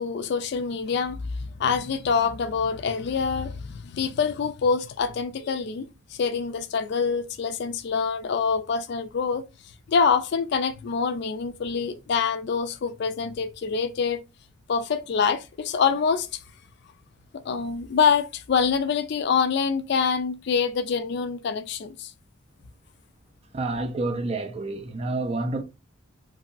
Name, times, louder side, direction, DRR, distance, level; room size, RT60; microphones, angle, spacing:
voice 1, 0.0-9.4 9.9-14.2 14.7-16.4 17.4-22.1, left 6 dB, 55° left, 0.3 m, -25 dB
voice 2, 23.5-25.6, right 2 dB, 30° right, 0.4 m, -28 dB
2.9 x 2.7 x 2.4 m
head